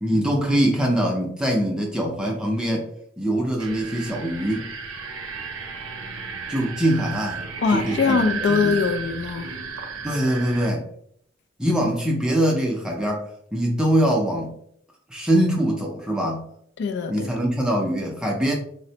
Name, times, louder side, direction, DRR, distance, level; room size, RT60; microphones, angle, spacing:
voice 1, 0.0-2.9 3.2-4.7 6.5-8.8 10.0-10.9 11.6-13.2 13.5-14.6 15.1-16.5 17.1-18.5, equal, 5° right, 0.4 m, -23 dB
sound 1, 3.6-10.7, right 5 dB, 85° right, 0.6 m, -33 dB
voice 2, 7.6-9.5 16.8-17.3, left 5 dB, 60° left, 0.3 m, -22 dB
4.1 x 2.0 x 2.7 m
head